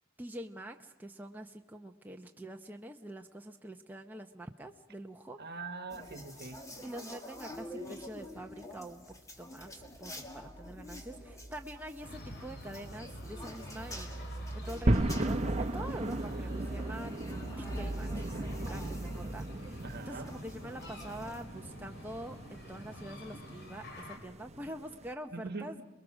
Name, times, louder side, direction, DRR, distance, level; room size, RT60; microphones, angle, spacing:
voice 1, 0.2-5.4 6.8-9.0 9.4-17.3 17.6-25.8, right 1 dB, 10° right, 3 dB, 0.7 m, -45 dB
voice 2, 5.4-6.6 19.8-20.4 25.3-25.8, right 3 dB, 50° right, 9 dB, 1.5 m, -42 dB
sound 1, 5.9-21.4, right 1 dB, 15° left, 2.2 m, -43 dB
sound 2, 12.0-24.2, left 1 dB, 55° left, 3.0 m, -50 dB
sound 3, 14.9-25.1, right 1 dB, 30° right, 1.0 m, -36 dB
28.0 x 21.5 x 6.3 m, 1.1 s
head